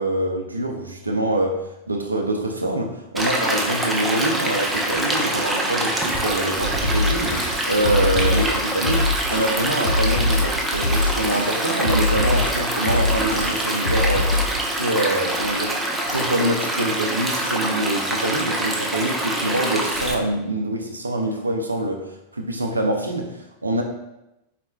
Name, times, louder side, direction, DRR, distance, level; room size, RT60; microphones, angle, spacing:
voice 1, 0.0-14.4 14.7-15.8 16.0-23.8, right 1 dB, 80° right, 2 dB, 0.4 m, -25 dB
Stream, 3.2-20.2, right 1 dB, 10° right, 0.6 m, -25 dB
sound 1, 6.8-14.6, left 2 dB, 70° left, 0.5 m, -24 dB
4.2 x 4.1 x 2.2 m, 0.91 s
figure-of-eight pair, 90°, 0 cm